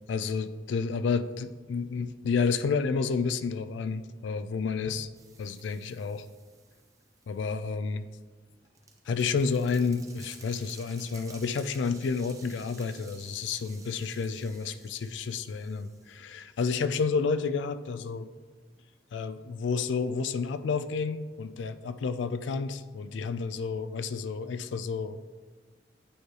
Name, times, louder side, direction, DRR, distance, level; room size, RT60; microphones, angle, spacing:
voice 1, 0.1-5.1 5.4-6.3 7.3-8.0 9.1-18.3 19.1-25.2, left 5 dB, 80° left, 12 dB, 0.4 m, -30 dB
sound 1, 5.1-7.3 8.3-16.2, right 4 dB, 15° right, 0.6 m, -53 dB
8.9 x 4.7 x 3.2 m, 1.4 s
head